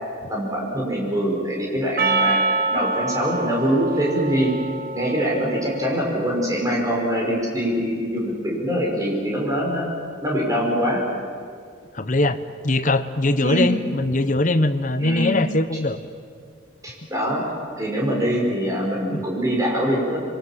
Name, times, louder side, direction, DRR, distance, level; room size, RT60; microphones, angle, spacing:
voice 1, 0.3-2.4 2.7-4.5 4.9-9.9 10.2-11.0 13.4-13.7 15.0-15.4 16.8-17.4 17.8-20.2, equal, 15° right, -2 dB, 5.9 m, -23 dB
Percussion, 2.0-6.5, right 3 dB, 50° right, 1.7 m, -26 dB
voice 2, 11.9-16.0 19.1-19.2, left 2 dB, 40° left, 10 dB, 1.0 m, -21 dB
26.0 x 23.0 x 7.5 m, 2.2 s
head